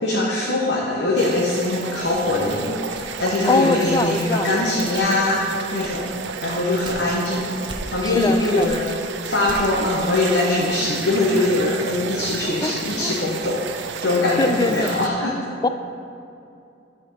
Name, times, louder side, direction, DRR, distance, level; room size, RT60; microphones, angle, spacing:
voice 1, 0.0-6.0 6.4-15.4, left 2 dB, 70° left, -4 dB, 1.0 m, -22 dB
sound 1, 1.2-15.1, right 6 dB, 80° right, 0.4 m, -32 dB
sound 2, 2.0-3.4 3.8-4.3 4.9-5.3 5.8-7.3 7.7-8.3 8.6-9.9, right 1 dB, 25° right, 0.7 m, -39 dB
voice 2, 3.5-4.5 8.0-8.7 12.6-13.1 14.4-14.9 15.6-15.7, left 2 dB, 20° left, 9 dB, 0.3 m, -22 dB
13.0 x 5.0 x 4.1 m, 2.6 s
head